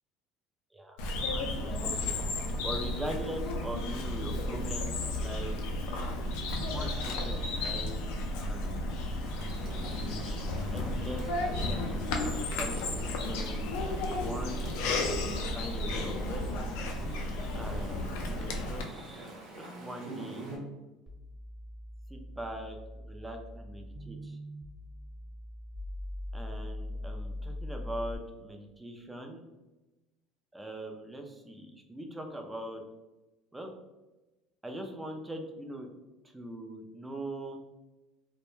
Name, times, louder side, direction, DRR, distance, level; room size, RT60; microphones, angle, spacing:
Bird vocalization bird call bird song, 1.0-18.8, left 2 dB, 80° left, 0.4 m, -33 dB
voice 1, 1.3-2.1 2.6-6.2 6.7-8.0 8.5-8.9 9.8-10.4 10.7-13.7 14.2-16.7 17.5-19.3 19.6-20.4 22.1-22.8 23.1-24.4 26.3-29.5 30.5-32.8 33.5-33.7 34.6-35.9 36.3-37.6, right 1 dB, 10° right, 3 dB, 0.4 m, -41 dB
Chatter / Stream, 9.2-20.6, right 2 dB, 65° right, 0.7 m, -45 dB
sound 1, 21.1-28.2, left 1 dB, 30° right, 1.0 m, -41 dB
2.2 x 2.1 x 3.0 m, 1.1 s
supercardioid pair, 110°, 0 cm